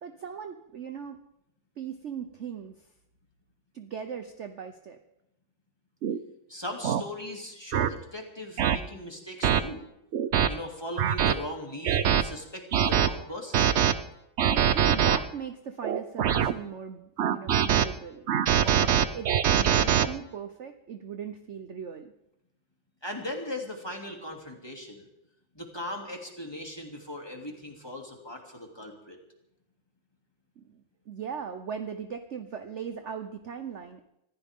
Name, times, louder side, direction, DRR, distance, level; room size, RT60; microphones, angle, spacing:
voice 1, 0.0-1.2 1.8-2.9 3.7-5.0 14.5-22.1 30.6-34.0, right 7 dB, 50° right, 8 dB, 0.9 m, -39 dB
sound 1, 6.0-6.2 6.8-7.0 7.7-7.9 8.6-8.8 9.4-9.6 10.1-10.5 11.0-11.3 11.8-12.2 12.7-13.1 13.5-13.9 14.4-15.2 15.8-16.5 17.2-17.9 18.3-20.1, right 9 dB, 70° right, 0.6 m, -23 dB
voice 2, 6.5-9.9 10.5-13.7 23.0-25.1 25.5-29.2, left 1 dB, 10° left, 0 dB, 2.9 m, -39 dB
25.0 x 15.0 x 3.7 m, 0.83 s
omnidirectional pair, 2.1 m